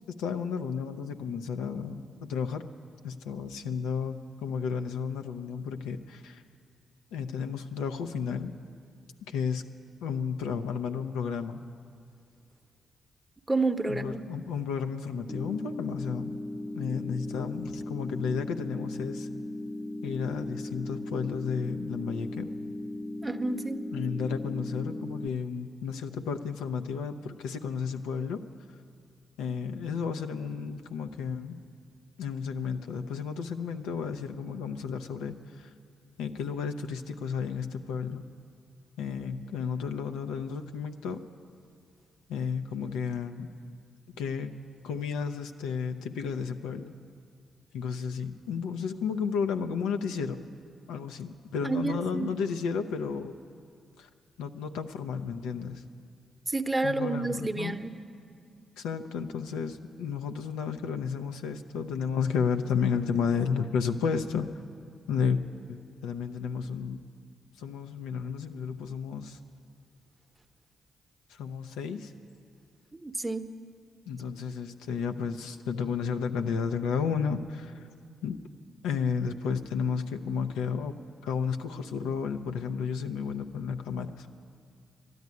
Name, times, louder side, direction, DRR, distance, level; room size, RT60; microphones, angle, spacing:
voice 1, 0.2-2.6 3.0-6.4 7.1-8.5 9.3-9.6 10.0-11.6 13.9-16.4 16.7-19.3 20.0-22.5 23.9-28.4 29.4-31.6 32.2-35.7 36.2-38.2 39.0-41.2 42.3-43.5 44.2-44.5 44.8-46.9 47.7-50.4 50.9-53.4 54.0-54.1 54.4-55.8 56.8-57.8 58.8-64.5 65.1-65.4 65.7-67.0 67.6-69.4 71.3-72.1 74.1-77.9 78.2-78.4 78.8-84.3, left 6 dB, 90° left, 7 dB, 0.5 m, -32 dB
voice 2, 13.5-14.2 23.2-23.8 51.6-52.3 56.5-58.0 73.0-73.5, right 3 dB, 20° right, 8 dB, 0.8 m, -29 dB
sound 1, 15.3-25.3, left 1 dB, 10° left, 0.6 m, -37 dB
12.5 x 9.4 x 9.5 m, 2.3 s
supercardioid pair, 50°, 0 cm